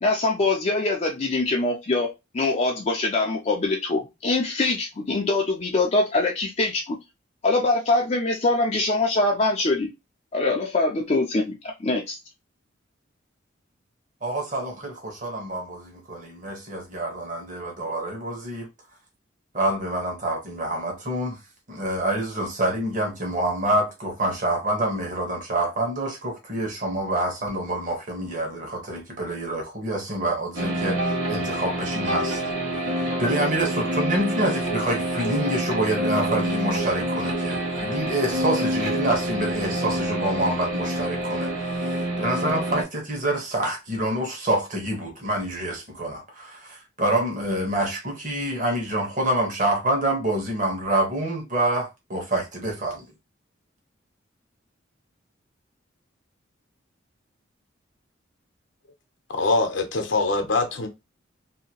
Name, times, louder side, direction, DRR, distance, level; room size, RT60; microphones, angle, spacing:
voice 1, 0.0-7.0 7.4-9.9 10.3-12.2, left 2 dB, 35° left, 0.4 m, -23 dB
voice 2, 14.2-18.7 19.5-21.4 21.7-32.4 32.8-53.0, right 1 dB, 40° right, 1.2 m, -27 dB
sound 1, 30.5-42.8, right 1 dB, 85° right, 1.2 m, -27 dB
voice 3, 59.3-60.9, left 3 dB, 75° left, 0.7 m, -23 dB
2.8 x 2.7 x 2.8 m
head